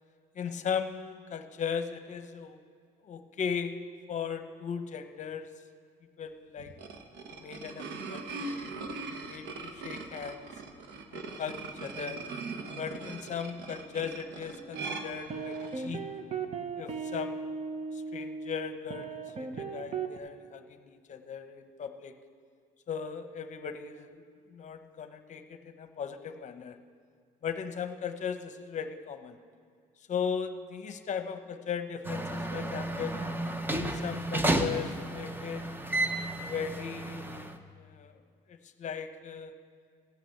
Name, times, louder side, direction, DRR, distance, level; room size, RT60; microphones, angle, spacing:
voice 1, 0.3-2.6 3.0-3.7 4.1-5.5 6.2-6.7 7.3-8.7 9.1-10.5 11.1-12.2 12.8-16.0 16.8-17.5 17.9-22.1 22.9-24.2 24.5-26.8 27.4-29.3 30.1-33.2 33.7-35.7 36.4-37.5 37.8-38.1 38.5-39.5, left 7 dB, 45° left, 9 dB, 0.9 m, -37 dB
sound 1, 6.6-15.9, right 3 dB, 85° right, 1.1 m, -41 dB
sound 2, 14.7-20.2, right 5 dB, 40° right, 0.9 m, -37 dB
sound 3, 32.0-37.6, right 1 dB, 10° right, 0.8 m, -32 dB
14.5 x 6.1 x 8.6 m, 2.1 s
cardioid pair, 110°, 17 cm